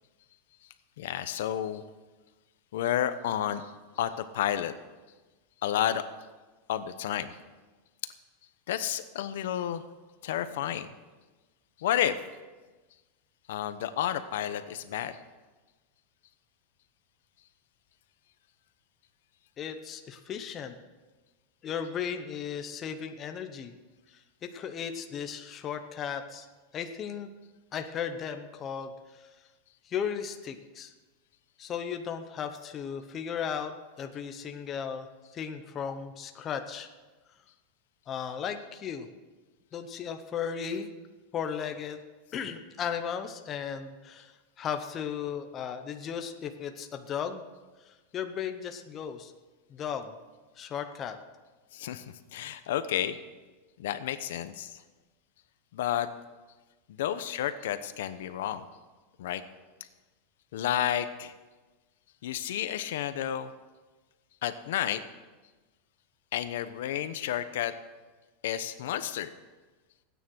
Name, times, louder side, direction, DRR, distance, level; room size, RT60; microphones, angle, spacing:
voice 1, 1.0-1.8 2.7-3.7 4.0-4.7 5.6-6.0 6.7-7.3 8.7-9.8 10.2-10.9 11.8-12.2 13.5-15.2 51.7-52.0 52.3-53.2 53.8-54.8 55.7-56.1 56.9-58.6 59.2-59.4 60.5-61.3 62.2-63.5 64.4-65.0 66.3-67.7 68.4-69.3, left 11 dB, 70° left, 12 dB, 0.9 m, -31 dB
voice 2, 19.6-20.7 21.6-23.7 24.1-26.5 26.7-27.3 27.7-29.3 29.8-30.9 31.6-36.9 38.1-39.1 39.7-40.9 41.3-42.0 42.3-47.4 47.9-49.3 49.7-50.1 50.6-51.2, left 7 dB, 20° left, 6 dB, 0.8 m, -36 dB
16.5 x 9.4 x 6.3 m, 1.2 s
supercardioid pair, 175°, 0 cm